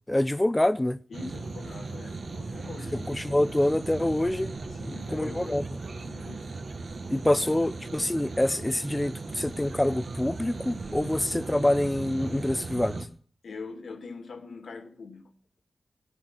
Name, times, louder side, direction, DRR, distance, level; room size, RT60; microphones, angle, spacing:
voice 1, 0.0-1.0 2.9-5.6 7.1-13.1, left 1 dB, 15° left, 0.6 m, -26 dB
voice 2, 1.1-3.1 4.7-5.7 6.0-6.5 7.1-7.7 13.4-15.3, left 4 dB, 85° left, 2.1 m, -43 dB
sound 1, 1.1-13.1, right 3 dB, 55° right, 1.6 m, -37 dB
16.0 x 10.5 x 5.9 m
wide cardioid pair, 130°, 0 cm